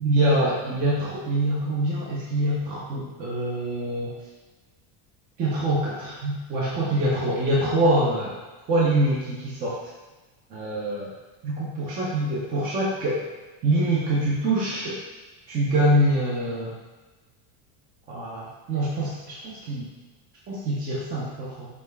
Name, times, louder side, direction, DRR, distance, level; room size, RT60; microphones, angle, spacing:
voice 1, 0.0-4.1 5.4-8.3 8.7-9.8 10.5-11.1 11.4-13.3 13.6-15.0 15.5-16.7 18.1-19.9 20.5-21.7, right 1 dB, 25° right, -5 dB, 0.3 m, -25 dB
5.1 x 2.3 x 3.2 m, 1.2 s
cardioid pair, 170°, 42 cm